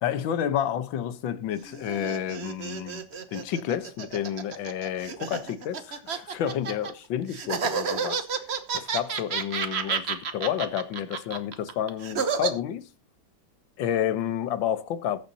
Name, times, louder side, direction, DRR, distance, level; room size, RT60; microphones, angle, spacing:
voice 1, 0.0-3.0 3.3-8.3 8.7-12.9 13.8-15.2, left 10 dB, 85° left, 1.6 m, -30 dB
sound 1, 1.5-6.9 7.3-12.5, right 6 dB, 45° right, 1.0 m, -31 dB
20.5 x 7.2 x 2.7 m
omnidirectional pair, 2.0 m